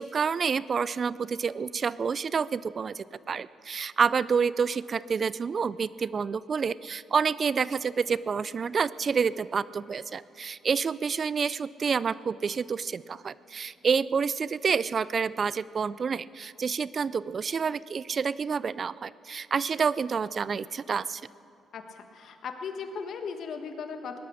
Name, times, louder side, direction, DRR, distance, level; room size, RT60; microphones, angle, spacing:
voice 1, 0.0-21.2, right 6 dB, 45° right, 19 dB, 0.3 m, -28 dB
voice 2, 21.7-24.2, left 5 dB, 65° left, 6 dB, 1.4 m, -37 dB
18.0 x 12.0 x 6.4 m, 2.6 s
cardioid pair, 90°, 0 cm